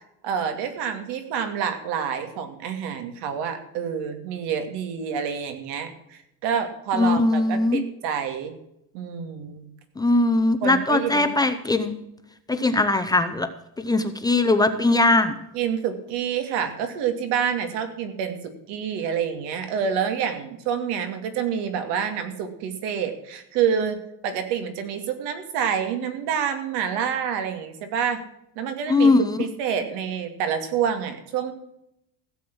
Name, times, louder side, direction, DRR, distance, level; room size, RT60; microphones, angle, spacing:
voice 1, 0.2-8.5 8.9-9.6 10.6-11.4 15.5-24.0 24.2-28.2 28.6-29.1 29.4-31.5, right 7 dB, 85° right, 7 dB, 2.6 m, -27 dB
voice 2, 6.9-7.8 10.0-12.0 12.5-13.5 13.8-15.3 28.9-29.4, left 2 dB, 10° left, 7 dB, 0.6 m, -20 dB
16.0 x 7.8 x 6.2 m, 0.80 s
cardioid pair, 175°, 40 cm